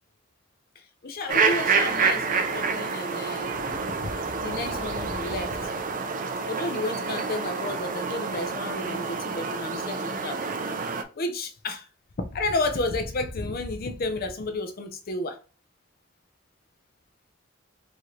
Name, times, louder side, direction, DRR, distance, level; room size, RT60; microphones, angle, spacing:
voice 1, 1.0-5.7 6.5-10.4 11.2-11.9 12.2-15.4, left 2 dB, 50° left, 0.5 m, -32 dB
sound 1, 1.3-11.0, right 5 dB, 40° right, 0.5 m, -28 dB
4.7 x 2.7 x 3.1 m
head